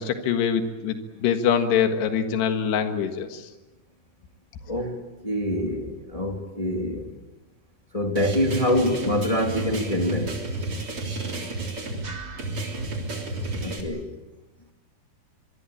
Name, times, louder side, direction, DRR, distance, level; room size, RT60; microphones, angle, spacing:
voice 1, 0.0-3.4, left 7 dB, 85° left, 7 dB, 3.7 m, -24 dB
voice 2, 4.7-7.1 7.9-10.4 11.2-11.4 13.6-14.1, left 1 dB, 10° left, 2 dB, 1.9 m, -26 dB
sound 1, 8.2-13.8, right 2 dB, 35° right, 3.9 m, -31 dB
25.0 x 22.0 x 8.6 m, 1.1 s
omnidirectional pair, 4.6 m